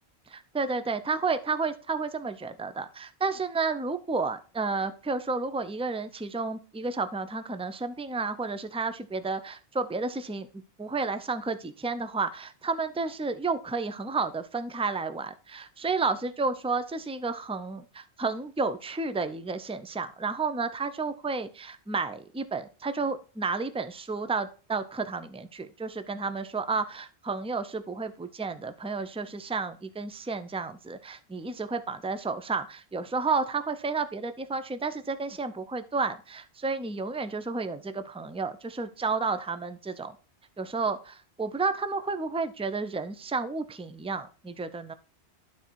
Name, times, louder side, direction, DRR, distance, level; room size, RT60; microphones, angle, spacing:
voice 1, 0.3-40.2 40.6-44.9, right 4 dB, 10° right, 11 dB, 0.3 m, -31 dB
11.5 x 4.1 x 4.5 m, 0.36 s
omnidirectional pair, 1.1 m